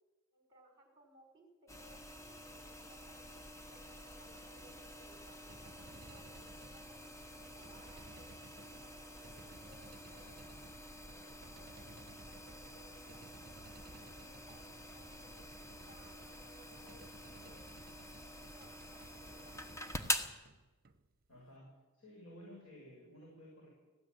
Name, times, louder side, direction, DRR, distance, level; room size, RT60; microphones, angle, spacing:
voice 1, 0.3-3.4 3.7-8.3 8.6-10.3 10.9-17.0 17.3-17.6 18.1-19.9, right 1 dB, 20° right, 2 dB, 4.6 m, -63 dB
sound 1, 1.7-20.3, left 1 dB, 15° left, 1.1 m, -47 dB
sound 2, 5.5-21.4, right 2 dB, 40° right, 1.0 m, -59 dB
voice 2, 21.3-23.7, equal, 75° left, -3 dB, 7.4 m, -55 dB
19.5 x 15.0 x 9.4 m, 1.2 s
head